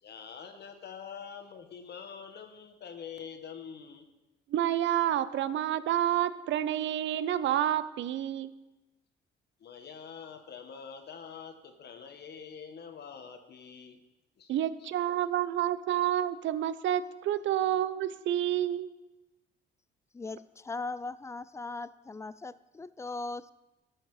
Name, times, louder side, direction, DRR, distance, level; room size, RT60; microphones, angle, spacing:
voice 1, 0.0-4.1 9.6-14.0 14.4-14.9, left 7 dB, 55° left, 6 dB, 1.1 m, -45 dB
voice 2, 4.5-8.5 14.5-18.9, right 11 dB, 70° right, 15 dB, 0.5 m, -29 dB
voice 3, 20.1-23.5, left 3 dB, 15° left, 17 dB, 0.3 m, -39 dB
12.0 x 6.4 x 4.7 m, 1.0 s
cardioid pair, 90°, 20 cm